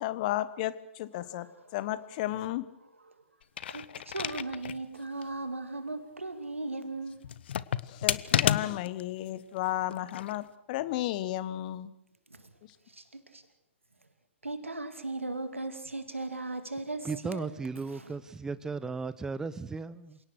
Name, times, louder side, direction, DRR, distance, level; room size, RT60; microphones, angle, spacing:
voice 1, 0.0-2.7 7.8-11.9 12.6-12.7, left 14 dB, 40° left, 1.3 m, -33 dB
sound 1, 3.4-4.8 5.2-5.3 7.2-9.0 9.9-10.4, left 10 dB, 55° left, 0.9 m, -30 dB
voice 2, 3.7-7.2 14.4-17.5 17.9-18.1, right 2 dB, 85° right, 2.7 m, -37 dB
voice 3, 17.0-20.2, right 4 dB, 10° right, 0.8 m, -36 dB
28.0 x 18.0 x 6.4 m
figure-of-eight pair, 120°, 7 cm